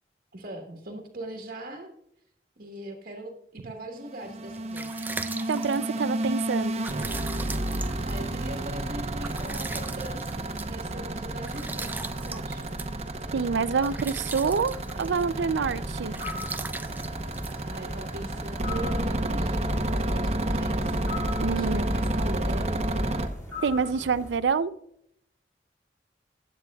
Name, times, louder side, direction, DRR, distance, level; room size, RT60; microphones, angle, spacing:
voice 1, 0.3-1.9 2.6-5.1 8.0-12.7 17.6-21.0 21.5-22.7, right 1 dB, 55° right, 1.3 m, -40 dB
sound 1, 3.9-23.3, right 1 dB, 35° right, 0.8 m, -31 dB
sound 2, 4.3-18.3, right 3 dB, 10° right, 0.3 m, -41 dB
voice 2, 5.5-6.8 13.3-16.1 21.4-21.9 23.6-24.7, right 5 dB, 85° right, 0.4 m, -27 dB
sound 3, 15.6-24.4, left 2 dB, 20° left, 2.1 m, -41 dB
15.0 x 9.1 x 2.3 m
head